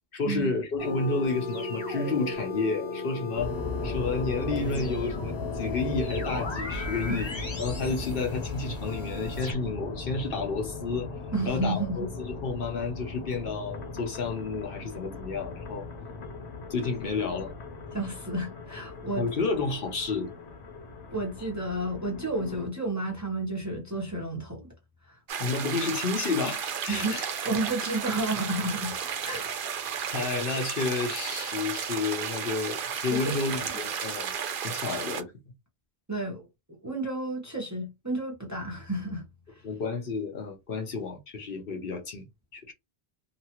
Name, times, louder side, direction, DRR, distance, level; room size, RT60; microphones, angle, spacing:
voice 1, 0.1-3.5 3.8-7.3 7.6-11.1 11.5-15.9 16.7-17.5 19.2-20.3 21.4-21.5 25.4-27.3 30.1-34.3 34.6-35.3 39.6-42.3 42.5-42.7, left 4 dB, 60° left, 0.9 m, -31 dB
sound 1, 0.8-9.5, left 3 dB, 30° left, 0.7 m, -36 dB
sound 2, 3.3-22.7, left 3 dB, 85° left, 1.1 m, -38 dB
voice 2, 11.3-12.1 17.9-19.3 21.1-24.7 25.1-25.2 26.9-27.2 27.4-29.0 29.2-29.5 29.9-30.2 33.1-33.7 36.1-39.3, right 2 dB, 20° right, 0.8 m, -31 dB
sound 3, 25.3-35.2, right 7 dB, 60° right, 0.7 m, -33 dB
2.8 x 2.3 x 2.9 m
omnidirectional pair, 1.1 m